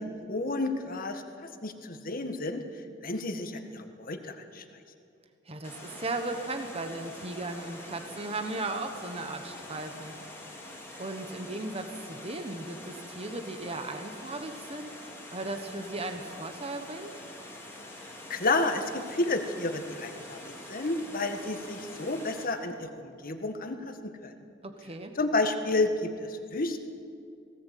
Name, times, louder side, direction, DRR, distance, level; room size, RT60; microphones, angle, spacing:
voice 1, 0.3-2.6 3.0-4.6 18.3-24.3 25.2-26.8, left 2 dB, 50° left, 6 dB, 1.7 m, -31 dB
voice 2, 5.4-10.2 11.0-14.9 15.3-17.1 24.6-25.1, right 2 dB, 30° right, 6 dB, 1.3 m, -36 dB
Water, 5.6-22.4, left 1 dB, 15° left, 3.3 m, -45 dB
19.0 x 17.5 x 8.4 m, 2.5 s
head